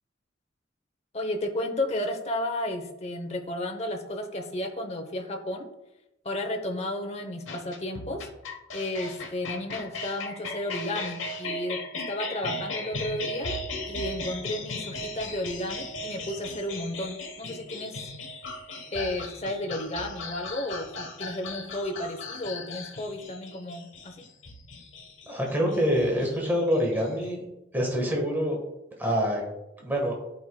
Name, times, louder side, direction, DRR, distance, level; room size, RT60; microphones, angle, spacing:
voice 1, 1.1-5.7 6.2-8.3 8.7-11.8 12.1-13.6 13.9-18.1 18.9-24.2, left 1 dB, 35° left, 4 dB, 0.8 m, -33 dB
sound 1, 7.5-27.3, left 2 dB, 75° left, 1.1 m, -37 dB
voice 2, 25.3-27.4 27.7-28.6 29.0-29.4 29.8-30.1, equal, 10° right, -1 dB, 1.3 m, -26 dB
11.5 x 4.9 x 2.2 m, 0.92 s
head